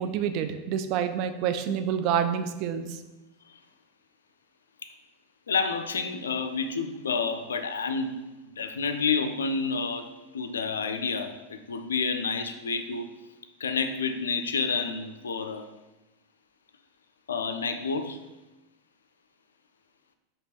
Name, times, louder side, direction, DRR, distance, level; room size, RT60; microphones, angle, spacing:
voice 1, 0.0-3.0, right 8 dB, 55° right, 9 dB, 0.3 m, -28 dB
voice 2, 5.5-8.2 8.6-10.1 10.3-13.1 13.6-15.7 17.3-18.2, left 5 dB, 85° left, 8 dB, 0.3 m, -29 dB
4.3 x 2.9 x 2.9 m, 1.0 s
hypercardioid pair, 90°, 0 cm